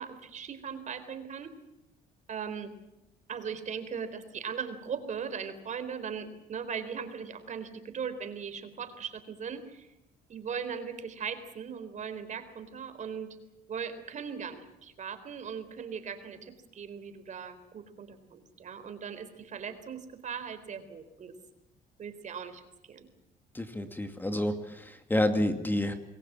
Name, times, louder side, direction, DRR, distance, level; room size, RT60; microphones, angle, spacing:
voice 1, 0.0-1.5 2.3-2.7 3.3-9.9 10.3-13.4 13.7-21.3 22.0-22.6 22.9-23.1, right 7 dB, 45° right, 10 dB, 3.9 m, -39 dB
voice 2, 23.5-25.9, left 1 dB, 10° left, 7 dB, 2.5 m, -29 dB
27.5 x 21.5 x 7.5 m, 0.90 s
cardioid pair, 110°, 17 cm